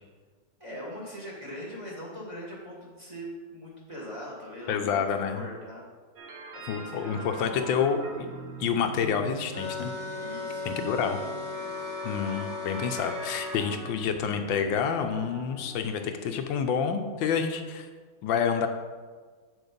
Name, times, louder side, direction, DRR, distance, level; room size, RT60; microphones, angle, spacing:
voice 1, 0.6-5.0 5.3-5.8 6.5-7.3 7.6-8.0 10.2-11.3 11.6-11.9, equal, 15° right, -4 dB, 2.0 m, -41 dB
voice 2, 4.7-5.5 6.7-8.3 8.6-9.9 10.6-11.2 12.0-17.9 18.2-18.7, left 7 dB, 80° left, 6 dB, 1.4 m, -28 dB
sound 1, 6.2-15.8, right 3 dB, 50° right, 0.8 m, -43 dB
sound 2, 9.5-13.6, left 3 dB, 10° left, 1.7 m, -36 dB
7.8 x 6.2 x 5.2 m, 1.5 s
omnidirectional pair, 2.1 m